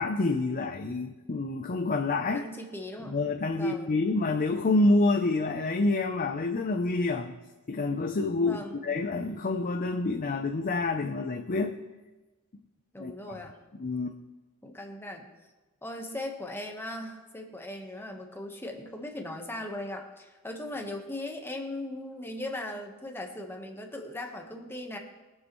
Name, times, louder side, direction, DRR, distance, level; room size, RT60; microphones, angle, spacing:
voice 1, 0.0-2.5 3.0-7.3 7.7-11.7 13.0-13.3 13.8-14.2, left 2 dB, 40° left, 4 dB, 0.6 m, -28 dB
voice 2, 2.3-3.2 3.5-3.9 8.4-8.8 12.9-13.6 14.6-15.3 15.8-25.0, left 1 dB, 10° left, 2 dB, 1.2 m, -38 dB
22.0 x 7.6 x 3.1 m, 1.2 s
head